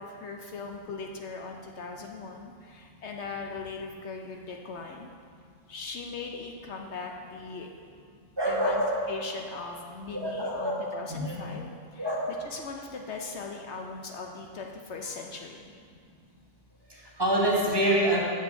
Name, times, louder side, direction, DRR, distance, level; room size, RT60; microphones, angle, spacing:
voice 1, 0.0-5.1 5.7-7.7 8.4-8.8 9.1-12.1 12.5-15.6, left 4 dB, 65° left, 2 dB, 1.0 m, -39 dB
voice 2, 8.4-9.0 10.1-10.8 11.1-11.4 12.0-12.3 15.0-15.1 16.9-18.2, right 1 dB, 20° right, -4 dB, 1.4 m, -26 dB
6.9 x 6.1 x 7.4 m, 2.3 s
omnidirectional pair, 1.3 m